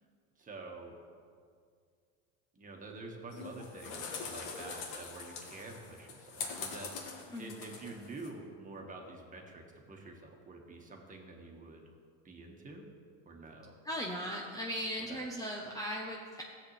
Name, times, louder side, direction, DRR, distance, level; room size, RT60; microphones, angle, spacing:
voice 1, 0.4-1.0 2.5-10.2 10.5-11.8 12.2-12.9 13.2-13.7 15.1-15.2, right 3 dB, 20° right, 1 dB, 1.6 m, -48 dB
sound 1, 3.3-8.3, left 4 dB, 70° left, 2.0 m, -43 dB
voice 2, 7.3-7.6 13.8-16.4, equal, 10° left, -1 dB, 0.8 m, -38 dB
16.0 x 8.0 x 3.3 m, 2.1 s
supercardioid pair, 125°, 39 cm